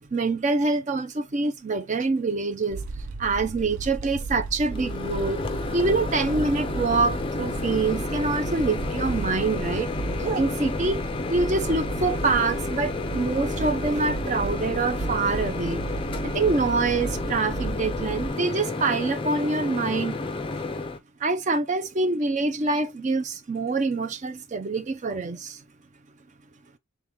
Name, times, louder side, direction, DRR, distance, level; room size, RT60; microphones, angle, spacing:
voice 1, 0.0-2.8 3.2-5.4 5.7-9.9 10.2-15.8 16.2-20.2 21.2-25.6, right 3 dB, 35° right, 0.5 m, -25 dB
sound 1, 2.7-18.3, right 3 dB, 80° right, 0.6 m, -34 dB
Microwave oven, 4.7-21.0, left 3 dB, 25° left, 0.4 m, -31 dB
3.6 x 3.1 x 3.0 m
head